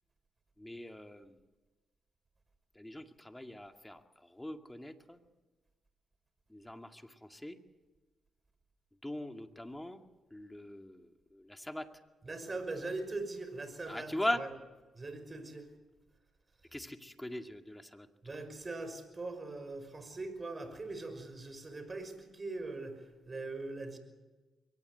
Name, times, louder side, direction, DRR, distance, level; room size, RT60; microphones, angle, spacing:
voice 1, 0.6-1.4 2.7-5.2 6.5-7.6 9.0-10.0 10.3-11.9 13.9-14.4 16.7-18.1, left 1 dB, 10° left, 6 dB, 2.2 m, -40 dB
voice 2, 12.2-14.6 14.9-15.7 16.6-16.8 18.2-24.0, right 3 dB, 35° right, 9 dB, 5.7 m, -41 dB
23.0 x 19.0 x 7.9 m, 1.2 s
supercardioid pair, 50°, 0 cm